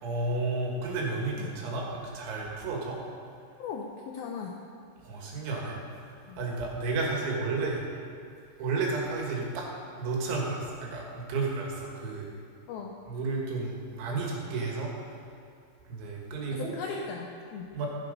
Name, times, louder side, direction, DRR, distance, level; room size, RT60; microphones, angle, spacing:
voice 1, 0.0-3.0 5.0-7.8 8.6-9.7 10.0-12.3 13.1-14.9 15.9-16.8 17.7-17.9, right 3 dB, 85° right, -1 dB, 4.2 m, -32 dB
voice 2, 3.6-4.6 6.3-6.4 12.7-13.0 16.5-17.7, left 5 dB, 80° left, 1 dB, 2.1 m, -38 dB
14.5 x 8.3 x 5.3 m, 2.5 s
omnidirectional pair, 5.2 m